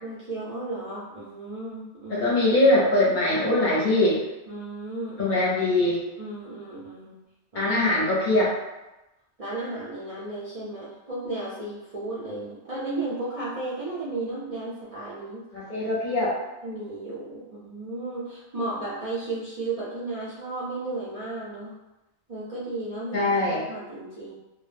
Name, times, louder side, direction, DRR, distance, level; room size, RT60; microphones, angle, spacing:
voice 1, 0.0-2.3 4.5-5.4 6.2-7.2 7.5-7.7 9.4-15.4 16.6-21.7 22.3-23.2 23.7-24.3, right 2 dB, 45° right, -9 dB, 0.4 m, -34 dB
voice 2, 2.1-4.2 5.2-6.0 7.5-8.5 15.5-16.3 23.1-23.6, left 2 dB, 50° left, -6 dB, 0.7 m, -22 dB
2.2 x 2.0 x 3.2 m, 1.0 s
omnidirectional pair, 1.2 m